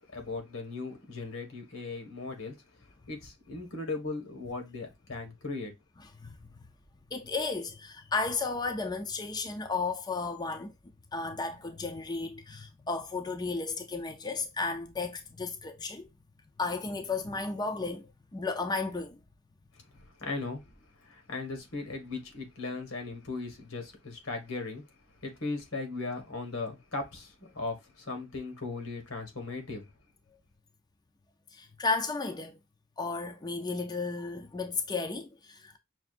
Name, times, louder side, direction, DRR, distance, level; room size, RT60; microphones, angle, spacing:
voice 1, 0.0-5.7 19.9-20.6 21.0-24.8 25.2-29.9, left 3 dB, 85° left, 1.5 m, -38 dB
voice 2, 7.1-10.7 11.1-16.1 16.6-19.2 31.5-32.6 33.0-35.8, left 3 dB, 20° left, 0.4 m, -34 dB
5.8 x 2.5 x 2.5 m
head